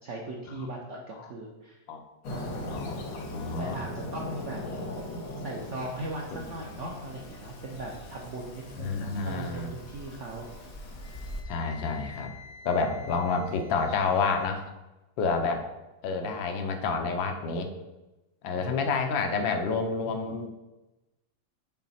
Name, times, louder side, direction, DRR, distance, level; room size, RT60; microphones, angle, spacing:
voice 1, 0.0-1.8 2.3-2.9 3.6-4.6 5.4-10.4 18.6-18.8 19.2-19.3, right 2 dB, 65° right, -1 dB, 0.7 m, -39 dB
Fireworks, 2.2-11.4, left 1 dB, 55° left, 1.2 m, -40 dB
voice 2, 2.7-3.8 8.8-9.7 11.5-12.3 12.6-14.6 15.2-15.6 16.0-17.7 18.4-20.5, left 4 dB, 80° left, 6 dB, 1.4 m, -29 dB
Wind instrument woodwind instrument, 11.0-14.5, left 3 dB, 30° left, 1.9 m, -50 dB
6.1 x 3.7 x 4.2 m, 1.0 s
omnidirectional pair, 2.1 m